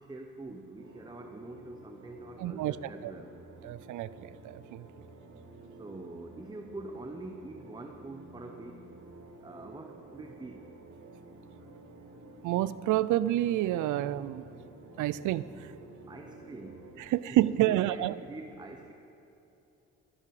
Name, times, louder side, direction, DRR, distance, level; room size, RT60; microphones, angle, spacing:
voice 1, 0.0-3.3 5.8-8.9 9.4-10.7 16.1-17.1 17.6-18.9, right 2 dB, 15° right, 4 dB, 1.0 m, -45 dB
sound 1, 0.8-16.9, right 2 dB, 45° right, 3.0 m, -52 dB
voice 2, 2.4-2.8 3.0-3.1 3.6-4.8 12.4-14.4 15.0-15.4 17.1-18.1, right 14 dB, 80° right, 17 dB, 0.5 m, -28 dB
16.0 x 13.0 x 4.9 m, 3.0 s
cardioid pair, 90°, 30 cm